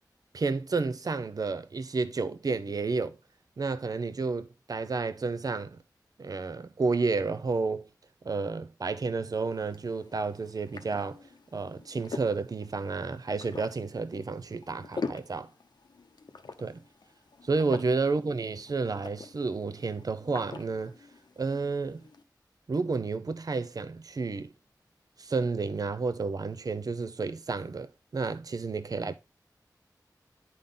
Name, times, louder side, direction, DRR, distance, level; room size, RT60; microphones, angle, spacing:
voice 1, 0.3-3.2 3.6-5.8 6.2-7.9 8.2-11.2 11.5-15.5 16.6-16.8 17.4-21.0 21.4-22.0 22.7-24.5 25.2-29.1, right 4 dB, 60° right, 0.5 m, -31 dB
sound 1, 9.3-22.2, left 4 dB, 80° left, 0.7 m, -44 dB
10.0 x 3.7 x 3.8 m
wide cardioid pair, 80°, 7 cm